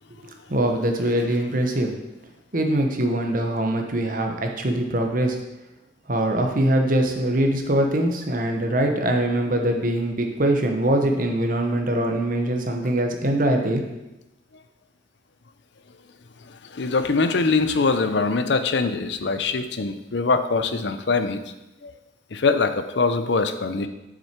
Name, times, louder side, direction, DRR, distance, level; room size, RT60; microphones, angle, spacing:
voice 1, 0.5-1.9 2.5-5.4 6.1-13.8, right 1 dB, 45° right, 3 dB, 1.1 m, -22 dB
voice 2, 16.7-21.4 21.8-21.9 22.3-23.9, left 4 dB, 60° left, 10 dB, 0.6 m, -23 dB
7.6 x 6.5 x 4.5 m, 0.99 s
head